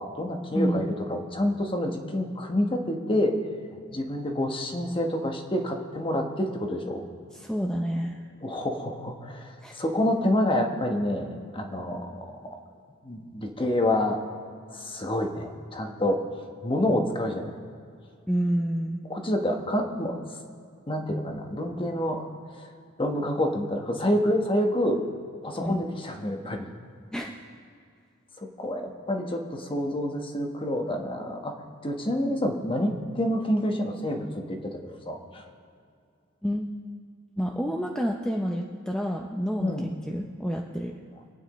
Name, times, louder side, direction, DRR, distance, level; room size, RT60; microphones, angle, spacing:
voice 1, 0.0-3.4 3.9-7.1 8.4-12.6 13.0-14.2 14.7-16.2 16.6-17.5 19.1-20.2 20.9-22.2 22.6-22.7 23.0-25.0 25.4-26.7 28.6-31.5 31.8-35.4 39.6-39.9, left 1 dB, 25° left, 3 dB, 1.2 m, -28 dB
voice 2, 0.5-0.9 7.3-8.2 9.6-9.8 18.3-19.0 25.6-25.8 27.1-27.3 36.4-36.7 37.4-40.9, equal, 5° left, 1 dB, 0.6 m, -29 dB
26.5 x 9.2 x 3.1 m, 2.4 s
head